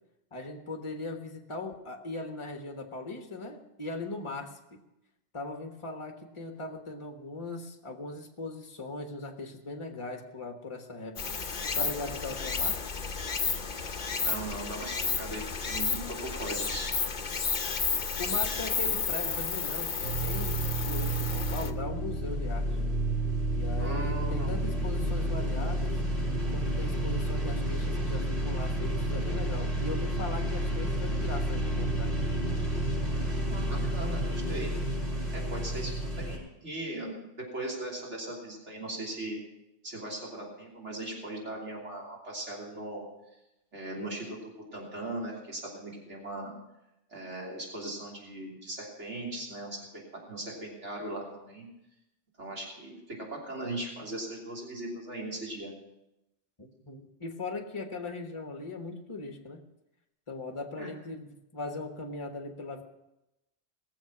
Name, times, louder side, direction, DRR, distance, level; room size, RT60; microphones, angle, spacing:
voice 1, 0.3-4.8 5.3-11.3 11.8-12.8 18.2-22.8 23.5-26.0 26.5-32.2 56.6-59.6 60.3-62.8, left 2 dB, 25° left, 4 dB, 1.4 m, -39 dB
Stream, 11.2-21.7, left 5 dB, 45° left, 0.9 m, -32 dB
voice 2, 14.2-16.9 23.8-24.7 33.4-34.7 35.3-37.2 37.5-39.4 39.8-43.0 43.7-46.5 47.1-51.7 52.4-55.7 60.8-60.9, right 1 dB, 75° right, -3 dB, 3.5 m, -39 dB
sound 1, 20.0-36.4, right 1 dB, 45° right, 5.9 m, -30 dB
20.0 x 7.3 x 6.0 m, 0.91 s
omnidirectional pair, 1.2 m